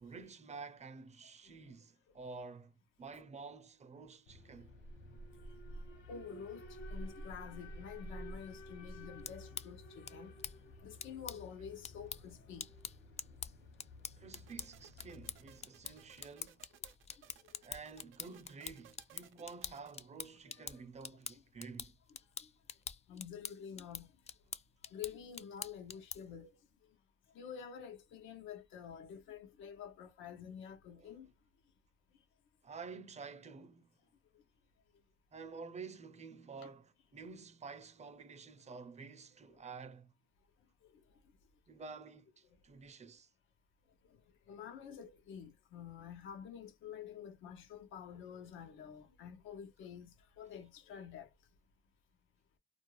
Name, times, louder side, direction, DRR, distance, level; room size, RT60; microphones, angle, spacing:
voice 1, 0.0-2.7 3.0-4.7 14.2-16.6 17.6-21.9 30.9-31.2 32.6-34.0 35.3-40.1 41.7-43.3, right 4 dB, 35° right, 0.6 m, -50 dB
Alarm, 4.3-16.3, equal, 65° left, 1.0 m, -51 dB
voice 2, 6.1-10.3 10.8-12.7 17.4-17.6 20.7-20.8 22.4-22.5 23.1-24.1 24.9-26.5 27.3-31.3 40.8-41.0 44.1-44.2 44.5-51.3, left 7 dB, 90° left, 0.7 m, -49 dB
sound 1, 9.0-26.4, left 7 dB, 35° left, 0.4 m, -48 dB
sound 2, 14.3-19.9, right 10 dB, 80° right, 0.5 m, -62 dB
2.5 x 2.2 x 3.0 m
cardioid pair, 90°, 20 cm